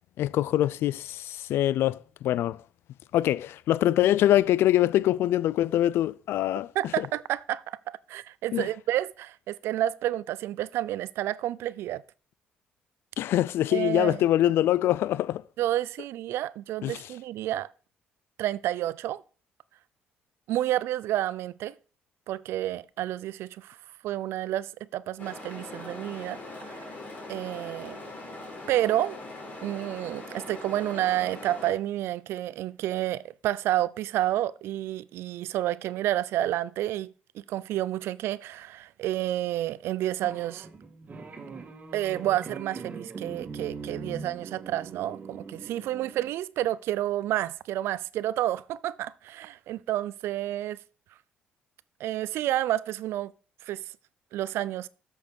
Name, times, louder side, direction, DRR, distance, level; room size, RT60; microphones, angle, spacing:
voice 1, 0.2-2.6 3.1-6.7 7.0-7.1 8.5-8.7 13.2-15.4 16.8-17.1, left 13 dB, 75° left, 0.3 m, -24 dB
voice 2, 6.8-7.8 8.1-12.0 13.7-14.2 15.6-17.7 18.4-19.2 20.5-21.7 22.3-23.8 24.0-26.4 26.6-26.9 27.3-28.0 28.7-29.2 29.6-40.7 41.9-50.8 52.0-53.3 53.6-53.9 54.3-54.9, right 13 dB, 80° right, 0.4 m, -30 dB
sound 1, 25.2-31.7, left 2 dB, 50° left, 4.4 m, -41 dB
sound 2, 40.2-46.3, right 4 dB, 40° right, 1.7 m, -41 dB
7.9 x 6.4 x 5.2 m
cardioid pair, 75°, 4 cm